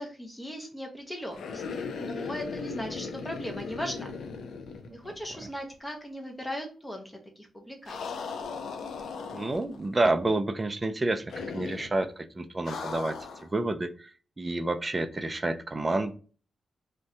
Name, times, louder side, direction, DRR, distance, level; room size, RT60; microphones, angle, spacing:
voice 1, 0.0-1.6 1.9-4.1 4.9-7.9, equal, 15° left, 2 dB, 0.6 m, -38 dB
sound 1, 1.3-5.5 5.7-5.8 7.9-9.9 11.3-12.0 12.7-13.5, left 5 dB, 80° left, 0.4 m, -38 dB
voice 2, 9.3-16.1, right 2 dB, 25° right, 9 dB, 0.3 m, -29 dB
2.6 x 2.2 x 3.6 m, 0.39 s
cardioid pair, 80°, 0 cm